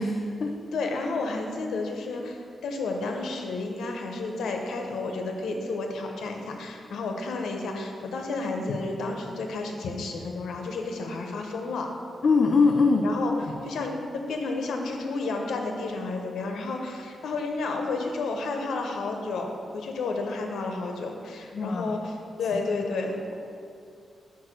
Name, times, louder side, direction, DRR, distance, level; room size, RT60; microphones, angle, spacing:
voice 1, 0.0-0.5 12.2-13.4 21.5-21.9, left 4 dB, 45° left, 2 dB, 0.4 m, -22 dB
voice 2, 0.7-11.9 13.0-13.3 13.6-23.3, left 3 dB, 85° left, 3 dB, 0.8 m, -31 dB
4.7 x 4.7 x 6.1 m, 2.4 s
wide cardioid pair, 145°, 0 cm